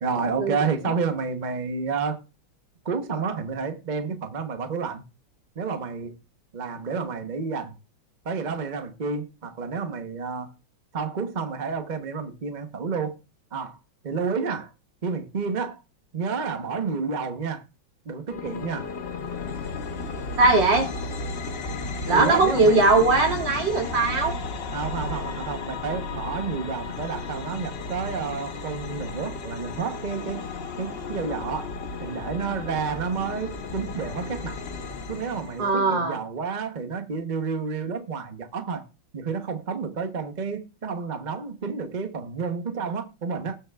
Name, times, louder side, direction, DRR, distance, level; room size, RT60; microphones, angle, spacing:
voice 1, 0.0-2.2 2.8-5.0 5.5-6.2 6.5-7.7 8.2-10.5 10.9-13.1 13.5-13.8 14.0-14.7 15.0-15.8 16.1-17.6 18.0-18.9 22.1-22.8 24.7-30.4 30.8-31.7 32.0-34.6 35.1-38.9 39.1-43.6, right 5 dB, 40° right, 0.7 m, -30 dB
sound 1, 18.3-35.7, left 3 dB, 45° left, 0.8 m, -34 dB
voice 2, 20.4-21.1 22.1-24.3 35.6-36.2, right 3 dB, 65° right, 3.3 m, -20 dB
19.5 x 6.7 x 2.4 m
omnidirectional pair, 2.2 m